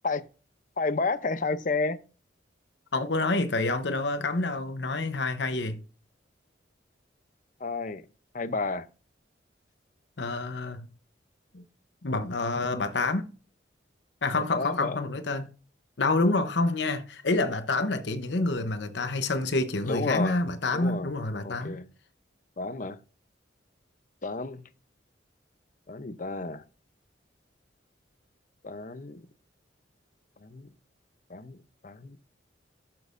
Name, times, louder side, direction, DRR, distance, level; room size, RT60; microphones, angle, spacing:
voice 1, 0.8-2.0 7.6-8.0 8.3-8.9 14.4-15.0 19.8-20.4 20.7-21.1 21.4-21.9 22.6-23.0 24.2-24.6 25.9-26.6 28.6-29.2 30.4-30.7 31.3-31.6 31.8-32.2, left 3 dB, 45° left, 0.7 m, -31 dB
voice 2, 2.9-5.8 10.2-10.9 11.5-11.6 12.0-13.3 14.2-15.5 16.0-21.8, left 2 dB, 70° left, 0.9 m, -28 dB
12.0 x 6.2 x 2.6 m
head